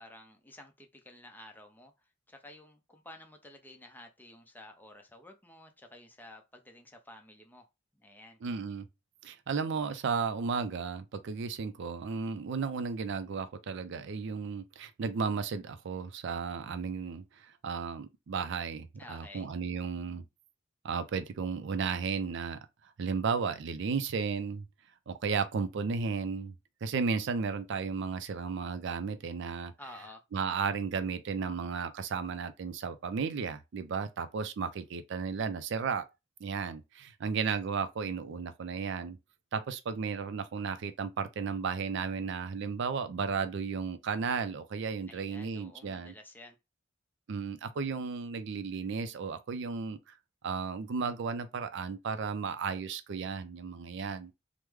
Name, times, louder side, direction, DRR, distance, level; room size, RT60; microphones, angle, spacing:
voice 1, 0.0-7.7 7.9-8.4 19.0-19.5 29.8-30.2 45.1-46.6, left 1 dB, 10° left, 0.5 m, -52 dB
voice 2, 8.4-8.9 9.2-20.2 20.8-22.6 23.0-24.6 25.1-26.5 26.8-29.7 30.3-36.1 36.4-39.2 39.5-46.1 47.3-50.0 50.4-54.3, right 5 dB, 65° right, 0.4 m, -34 dB
3.1 x 2.0 x 3.4 m
head